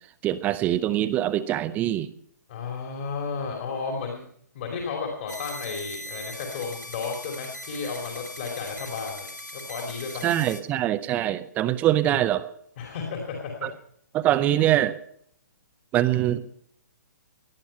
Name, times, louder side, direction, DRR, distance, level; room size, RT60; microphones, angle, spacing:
voice 1, 0.2-2.1 10.2-12.4 13.6-13.7 14.1-15.0 15.9-16.4, right 13 dB, 15° right, 13 dB, 0.6 m, -23 dB
voice 2, 2.5-4.2 4.5-9.3 9.5-10.3 12.8-13.7, left 5 dB, 40° left, 0 dB, 3.0 m, -33 dB
sound 1, 5.3-10.6, left 1 dB, 85° left, 2.5 m, -40 dB
18.5 x 11.0 x 5.6 m, 0.66 s
figure-of-eight pair, 125°, 10 cm